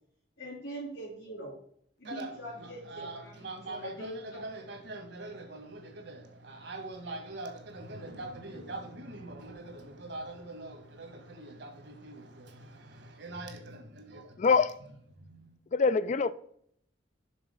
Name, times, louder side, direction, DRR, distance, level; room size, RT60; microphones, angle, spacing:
voice 1, 0.4-1.6 2.0-4.4, right 1 dB, 65° left, 2.5 m, -43 dB
voice 2, 2.0-14.5 15.2-15.6, right 2 dB, 65° right, 1.4 m, -43 dB
voice 3, 14.4-14.7 15.7-16.3, left 5 dB, 40° left, 0.3 m, -24 dB
6.2 x 4.0 x 5.2 m
head